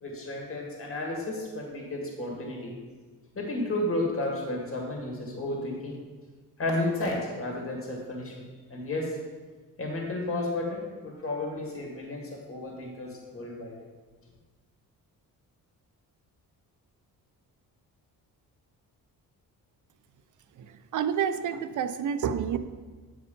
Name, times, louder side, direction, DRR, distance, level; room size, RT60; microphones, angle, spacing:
voice 1, 0.0-2.7 3.4-6.0 6.6-8.4 8.7-9.2 9.8-13.8, left 2 dB, 35° left, -1 dB, 2.0 m, -32 dB
voice 2, 20.6-22.6, right 8 dB, 55° right, 11 dB, 0.6 m, -29 dB
8.6 x 4.5 x 5.4 m, 1.4 s
cardioid pair, 85°, 37 cm